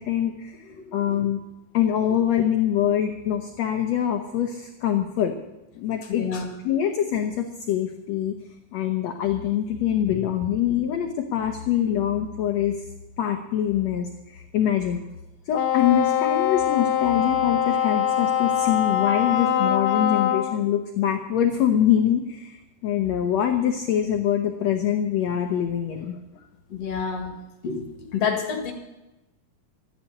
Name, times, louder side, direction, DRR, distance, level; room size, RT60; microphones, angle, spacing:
voice 1, 0.0-0.5 0.9-1.4 1.7-5.3 5.7-6.2 6.6-8.3 8.7-12.8 13.2-15.0 15.5-26.2, left 10 dB, 70° left, 4 dB, 1.7 m, -24 dB
voice 2, 0.7-1.2 2.1-2.2 6.1-6.5 26.7-27.3 27.6-28.7, left 6 dB, 50° left, 4 dB, 2.6 m, -29 dB
Wind instrument woodwind instrument, 15.5-20.6, left 10 dB, 85° left, 1.4 m, -23 dB
13.0 x 10.5 x 8.6 m, 0.99 s
omnidirectional pair, 4.3 m